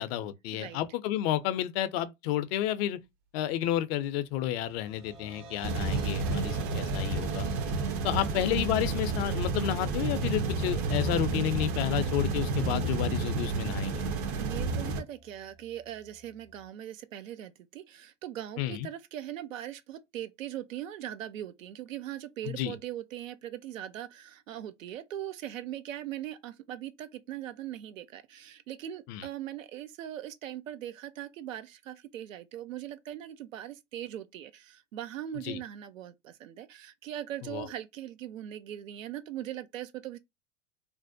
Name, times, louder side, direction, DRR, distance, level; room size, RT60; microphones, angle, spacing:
voice 1, 0.0-3.0 3.3-7.5 8.0-14.1 18.6-18.9 22.5-22.8 29.1-29.3 35.4-35.6 37.4-37.7, left 12 dB, 55° left, 0.5 m, -31 dB
sound 1, 4.3-16.7, right 3 dB, 55° right, 1.3 m, -50 dB
sound 2, 5.6-15.0, right 3 dB, 35° right, 0.5 m, -30 dB
voice 2, 7.9-8.4 14.3-40.2, right 11 dB, 85° right, 0.5 m, -40 dB
2.5 x 2.0 x 2.5 m
hypercardioid pair, 95°, 38 cm